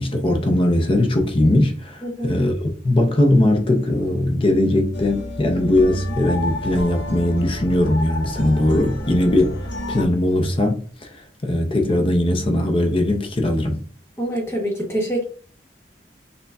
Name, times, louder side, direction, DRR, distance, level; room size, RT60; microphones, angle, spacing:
voice 1, 0.0-13.8, left 1 dB, 30° left, 0.6 m, -20 dB
voice 2, 2.0-2.4 14.2-15.2, equal, 15° left, 1.0 m, -25 dB
sound 1, 4.9-10.0, left 1 dB, 75° left, 0.6 m, -30 dB
6.5 x 2.2 x 2.3 m
head